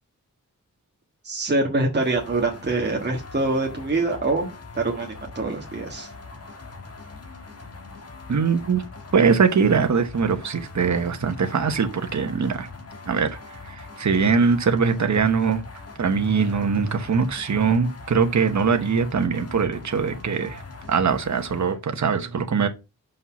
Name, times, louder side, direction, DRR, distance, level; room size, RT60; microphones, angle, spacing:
voice 1, 1.2-4.5 4.7-6.1, right 2 dB, 30° right, 1.5 m, -24 dB
sound 1, 2.0-21.8, left 3 dB, 45° left, 1.6 m, -41 dB
voice 2, 8.3-8.8 9.1-12.7 13.0-15.6 16.0-20.6 20.9-22.7, right 5 dB, 55° right, 1.0 m, -22 dB
5.7 x 5.5 x 5.8 m
wide cardioid pair, 125°, 33 cm